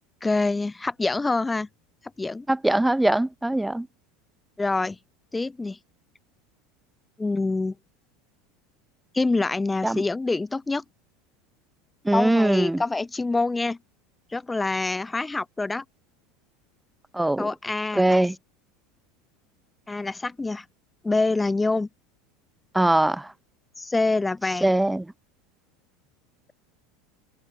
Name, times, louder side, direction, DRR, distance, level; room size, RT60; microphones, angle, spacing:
voice 1, 0.2-1.7 2.2-2.5 4.6-5.0 5.3-5.8 7.2-7.7 9.1-10.8 12.1-13.8 14.3-15.8 17.4-18.3 19.9-20.6 21.0-21.9 23.8-24.7, left 3 dB, 15° left, 6.7 m, -26 dB
voice 2, 2.5-3.9 9.8-10.0 12.1-12.8 17.1-17.5 18.0-18.3 22.8-23.2 24.6-25.0, right 1 dB, 5° right, 3.5 m, -21 dB
open air
hypercardioid pair, 90°, 0 cm